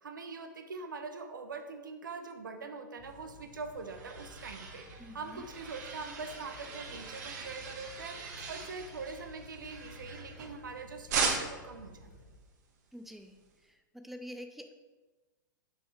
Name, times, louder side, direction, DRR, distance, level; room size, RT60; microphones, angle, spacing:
voice 1, 0.0-4.9 5.1-12.1, right 4 dB, 70° right, 6 dB, 1.0 m, -43 dB
sound 1, 3.0-12.4, left 1 dB, 45° left, 1.3 m, -53 dB
sound 2, 3.4-10.7 11.1-11.8, right 5 dB, 55° right, 1.4 m, -39 dB
voice 2, 5.0-5.4 12.9-13.4 13.6-14.7, equal, ahead, 7 dB, 0.6 m, -47 dB
6.3 x 6.2 x 4.6 m, 1.2 s
figure-of-eight pair, 105°, 11 cm